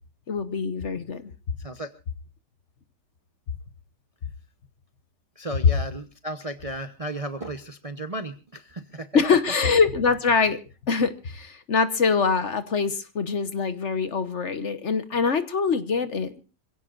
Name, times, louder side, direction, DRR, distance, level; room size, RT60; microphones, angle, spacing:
voice 1, 0.3-1.3 9.1-10.6 10.9-16.4, left 5 dB, 50° left, 1.2 m, -24 dB
voice 2, 1.6-1.9 5.4-9.1, right 1 dB, 30° right, 0.7 m, -34 dB
26.5 x 16.5 x 2.5 m
omnidirectional pair, 1.8 m